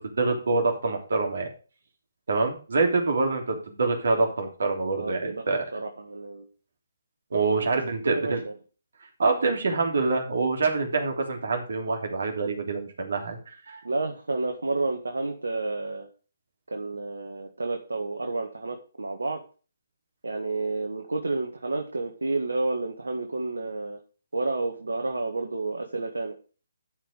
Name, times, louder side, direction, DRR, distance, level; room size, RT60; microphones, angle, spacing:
voice 1, 0.2-1.5 2.3-5.6 7.3-8.4 9.2-13.9, right 3 dB, 70° right, 2 dB, 3.2 m, -26 dB
voice 2, 5.0-6.5 7.7-8.5 13.8-16.1 16.7-19.4 20.2-24.0 24.3-26.4, right 3 dB, 85° right, 3 dB, 1.7 m, -30 dB
12.5 x 5.1 x 5.1 m, 0.36 s
figure-of-eight pair, 145°, 0 cm